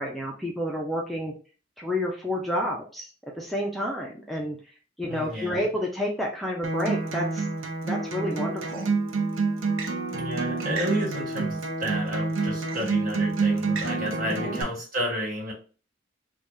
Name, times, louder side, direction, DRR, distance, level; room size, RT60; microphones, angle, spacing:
voice 1, 0.0-1.3 1.8-3.1 3.4-4.6 5.0-7.5 7.8-8.9 14.3-14.6, left 1 dB, ahead, -2 dB, 0.4 m, -30 dB
voice 2, 5.1-5.6 10.1-15.5, equal, 45° right, -3 dB, 1.4 m, -31 dB
Acoustic guitar, 6.6-14.6, right 3 dB, 85° right, 0.6 m, -28 dB
3.3 x 2.3 x 2.6 m, 0.37 s
head